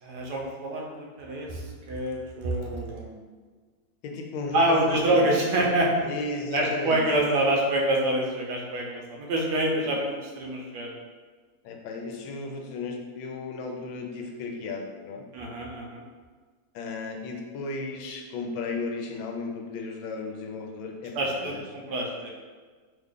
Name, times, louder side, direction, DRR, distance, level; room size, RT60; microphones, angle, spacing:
voice 1, 0.0-3.2 4.5-6.1 6.5-11.0 15.3-16.0 21.1-22.3, right 1 dB, 70° right, -1 dB, 1.0 m, -26 dB
voice 2, 4.0-5.3 6.0-7.0 11.6-15.2 16.7-21.6, left 3 dB, 85° left, 2 dB, 1.3 m, -34 dB
3.3 x 2.2 x 3.7 m, 1.5 s
omnidirectional pair, 2.1 m